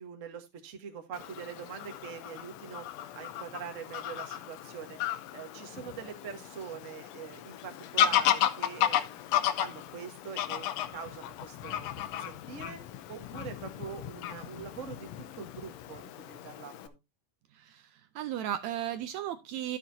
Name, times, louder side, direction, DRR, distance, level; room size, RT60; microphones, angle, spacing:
voice 1, 0.0-2.8 3.1-5.0 5.3-10.7 10.9-12.8 13.1-16.9, right 7 dB, 50° right, 5 dB, 0.9 m, -44 dB
Fowl / Bird vocalization bird call bird song, 1.1-16.9, left 11 dB, 75° left, 1.5 m, -34 dB
voice 2, 17.5-19.8, right 11 dB, 75° right, 10 dB, 1.7 m, -35 dB
12.5 x 7.3 x 2.7 m, 0.22 s
omnidirectional pair, 3.7 m